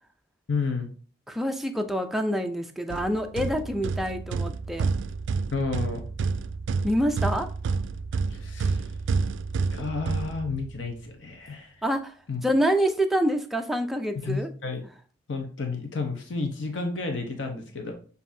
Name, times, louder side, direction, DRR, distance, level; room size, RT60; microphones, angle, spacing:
voice 1, 0.5-0.9 5.5-6.0 8.3-8.8 9.7-11.7 12.3-12.4 14.1-14.9 15.3-17.9, left 4 dB, 85° left, 0.8 m, -31 dB
voice 2, 1.3-4.9 6.8-7.5 11.8-12.1 12.4-14.5, equal, ahead, 0.4 m, -26 dB
sound 1, 2.9-10.9, right 4 dB, 80° right, 0.3 m, -29 dB
7.1 x 2.7 x 2.6 m
head